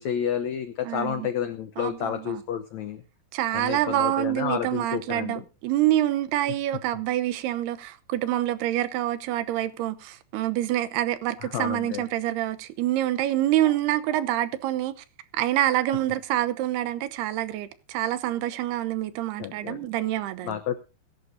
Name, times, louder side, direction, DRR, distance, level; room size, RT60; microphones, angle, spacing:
voice 1, 0.0-3.0 3.5-5.4 11.4-12.0 19.4-19.8 20.4-20.8, left 9 dB, 85° left, 1.6 m, -30 dB
voice 2, 0.8-1.3 1.8-2.4 3.3-15.0 15.3-20.6, right 13 dB, 85° right, 2.9 m, -26 dB
23.0 x 11.5 x 2.7 m
omnidirectional pair, 4.6 m